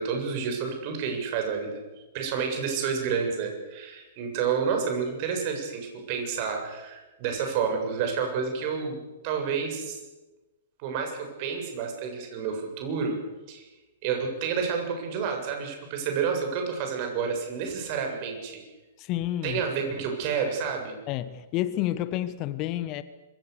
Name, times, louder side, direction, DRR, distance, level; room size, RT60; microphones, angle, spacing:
voice 1, 0.0-1.8 2.1-9.0 9.2-10.0 10.8-13.2 13.5-13.7 14.0-18.6 19.4-20.9, right 6 dB, 40° right, 3 dB, 7.4 m, -29 dB
voice 2, 19.0-19.6 21.1-23.0, left 13 dB, 35° left, 14 dB, 1.2 m, -29 dB
26.0 x 24.5 x 6.9 m, 1.1 s
figure-of-eight pair, 110°, 0 cm